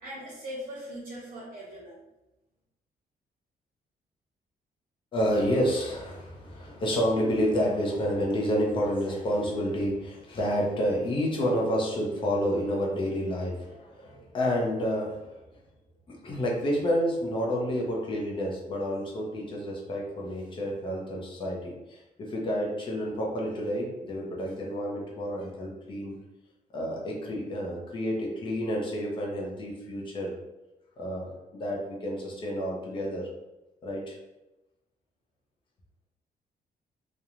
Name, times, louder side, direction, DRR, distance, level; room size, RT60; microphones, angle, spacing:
voice 1, 0.0-2.0, equal, 75° right, -6 dB, 0.9 m, -40 dB
voice 2, 5.1-15.4 16.1-26.1 26.7-30.4 31.0-33.3 33.8-34.1, equal, 35° left, -2 dB, 0.6 m, -29 dB
3.0 x 2.2 x 2.4 m, 0.98 s
cardioid pair, 180°, 15 cm